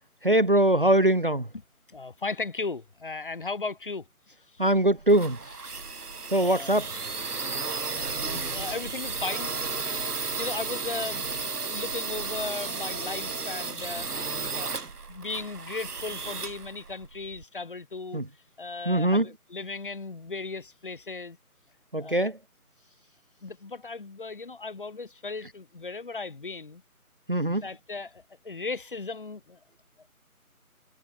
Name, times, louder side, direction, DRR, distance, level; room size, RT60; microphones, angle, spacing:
voice 1, 0.2-1.5 4.6-5.4 6.3-6.9 18.1-18.2 18.9-19.2 21.9-22.4 27.3-27.6, right 1 dB, 35° right, 0.9 m, -22 dB
voice 2, 1.9-4.1 4.5-4.8 6.4-6.7 7.7-7.8 8.1-9.6 9.8-14.1 14.5-14.7 15.1-18.2 18.6-21.4 22.0-22.3 23.4-26.8 27.6-29.6, left 3 dB, 35° left, 4.1 m, -36 dB
sound 1, 4.7-17.4, right 4 dB, 85° right, 1.5 m, -34 dB
figure-of-eight pair, 170°, 45 cm